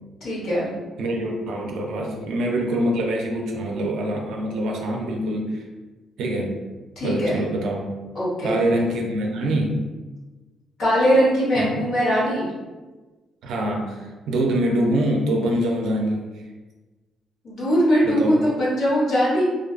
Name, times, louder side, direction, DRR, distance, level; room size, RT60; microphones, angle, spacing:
voice 1, 0.2-0.7 7.0-7.4 8.1-8.6 10.8-12.5 17.4-19.4, equal, 65° left, -7 dB, 1.1 m, -21 dB
voice 2, 1.0-5.6 6.2-6.5 7.0-7.8 8.4-9.8 11.6-11.8 13.4-16.3 18.0-18.4, right 1 dB, 85° right, 0 dB, 0.4 m, -24 dB
2.5 x 2.3 x 2.4 m, 1.2 s
cardioid pair, 90°, 0 cm